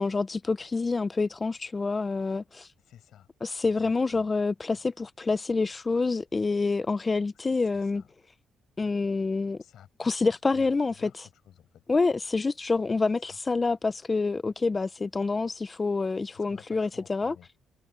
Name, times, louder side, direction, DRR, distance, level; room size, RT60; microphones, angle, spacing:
voice 1, 0.0-2.7 3.4-8.0 8.8-9.6 10.0-10.9 11.9-17.3, left 3 dB, 25° left, 0.6 m, -27 dB
voice 2, 2.8-3.3 3.6-4.3 7.3-8.1 9.4-10.3 10.5-11.8 13.3-13.4 16.3-17.5, left 10 dB, 70° left, 6.4 m, -54 dB
cardioid pair, 90°, 0 cm